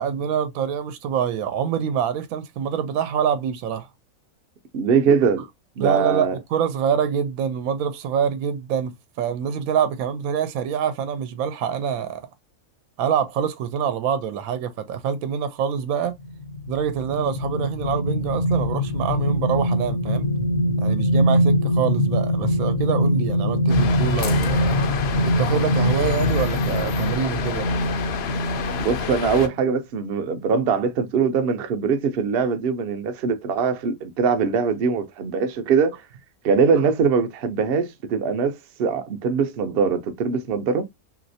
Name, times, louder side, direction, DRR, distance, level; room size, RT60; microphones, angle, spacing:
voice 1, 0.0-3.9 5.8-12.3 13.0-16.1 16.7-20.3 20.8-24.8 25.2-27.7, right 8 dB, 75° right, 1.0 m, -25 dB
voice 2, 4.7-5.4 5.8-6.4 28.8-35.9 36.4-40.9, right 5 dB, 55° right, 0.7 m, -22 dB
sound 1, 16.2-29.1 29.6-29.8, equal, 80° left, 1.3 m, -23 dB
sound 2, 23.7-29.5, left 7 dB, 65° left, 0.6 m, -28 dB
3.1 x 2.8 x 2.6 m
omnidirectional pair, 1.5 m